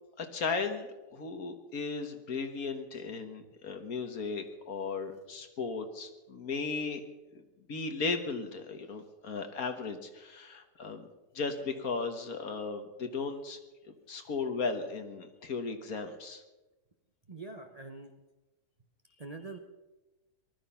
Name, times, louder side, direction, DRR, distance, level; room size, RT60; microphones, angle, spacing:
voice 1, 0.2-7.0 7.7-11.1 11.4-13.6 14.1-16.4, left 4 dB, 60° left, 7 dB, 1.8 m, -36 dB
voice 2, 17.3-18.1 19.2-19.6, right 3 dB, 30° right, 4 dB, 0.9 m, -44 dB
19.5 x 12.5 x 5.7 m, 1.1 s
omnidirectional pair, 1.8 m